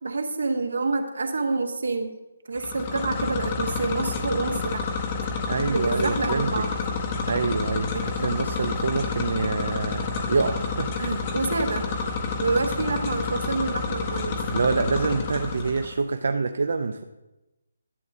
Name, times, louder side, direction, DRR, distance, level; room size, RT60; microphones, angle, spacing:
voice 1, 0.0-2.2 2.5-4.8 5.7-6.7 7.9-8.3 11.3-11.9 12.4-14.4, right 3 dB, 80° right, 6 dB, 1.0 m, -27 dB
sound 1, 2.6-15.9, left 4 dB, 25° left, 0.6 m, -29 dB
voice 2, 5.5-6.5 7.3-11.2 14.5-17.0, right 4 dB, 65° right, 7 dB, 0.4 m, -26 dB
11.0 x 7.1 x 2.6 m, 1.0 s
hypercardioid pair, 170°, 0 cm